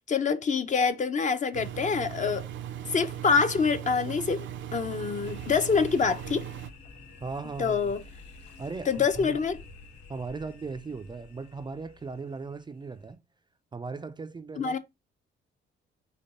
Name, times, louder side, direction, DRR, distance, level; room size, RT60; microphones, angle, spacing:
voice 1, 0.1-2.5 2.9-4.5 4.7-6.5 7.6-8.0 8.9-9.6 14.6-14.8, left 5 dB, 40° left, 0.7 m, -26 dB
Engine, 1.5-6.7, right 10 dB, 70° right, 0.6 m, -38 dB
sound 1, 5.2-13.1, left 4 dB, 60° left, 2.8 m, -50 dB
voice 2, 7.2-7.9 8.6-9.4 10.1-13.2 13.7-14.8, right 4 dB, 20° right, 0.4 m, -38 dB
5.1 x 2.3 x 4.2 m
cardioid pair, 90°, 20 cm